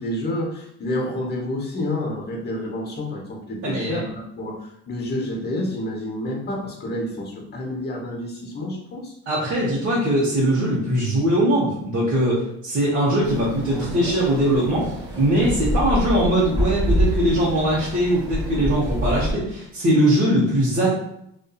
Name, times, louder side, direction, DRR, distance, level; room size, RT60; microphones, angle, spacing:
voice 1, 0.0-9.1, left 1 dB, 30° left, 0 dB, 0.9 m, -29 dB
voice 2, 3.6-4.0 9.3-14.9 15.2-20.9, right 1 dB, 40° right, -7 dB, 1.0 m, -21 dB
sound 1, 13.2-19.3, equal, 15° right, 1.5 m, -26 dB
2.6 x 2.4 x 2.3 m, 0.75 s
supercardioid pair, 75°, 31 cm